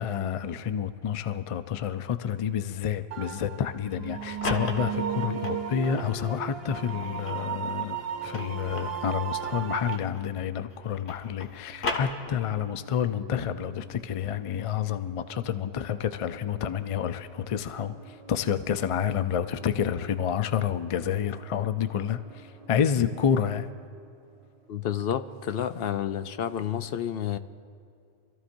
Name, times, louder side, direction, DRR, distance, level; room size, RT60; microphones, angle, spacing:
voice 1, 0.0-23.7, left 8 dB, 50° left, 11 dB, 0.4 m, -29 dB
sound 1, 3.1-10.0, right 8 dB, 75° right, 1.0 m, -34 dB
sound 2, 4.0-6.1 6.7-10.4 10.7-12.7, left 3 dB, 90° left, 1.5 m, -37 dB
sound 3, 10.8-26.8, right 5 dB, 35° right, 1.1 m, -54 dB
voice 2, 24.7-27.4, left 9 dB, 70° left, 11 dB, 0.8 m, -30 dB
26.0 x 14.5 x 2.6 m, 2.5 s
omnidirectional pair, 1.1 m